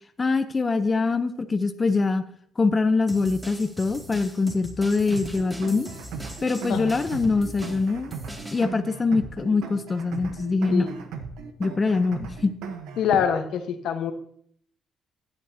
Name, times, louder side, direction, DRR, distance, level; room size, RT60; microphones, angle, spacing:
voice 1, 0.2-2.2 2.6-5.9 6.4-8.1 8.5-10.9 11.6-12.5, left 3 dB, 30° left, 9 dB, 0.7 m, -23 dB
sound 1, 3.1-8.6, equal, 10° right, 2.3 m, -41 dB
sound 2, 5.1-13.1, right 5 dB, 90° right, 1.0 m, -38 dB
voice 2, 13.0-14.1, left 7 dB, 80° left, 7 dB, 1.1 m, -25 dB
16.0 x 8.9 x 2.8 m, 0.63 s
cardioid pair, 90°, 0 cm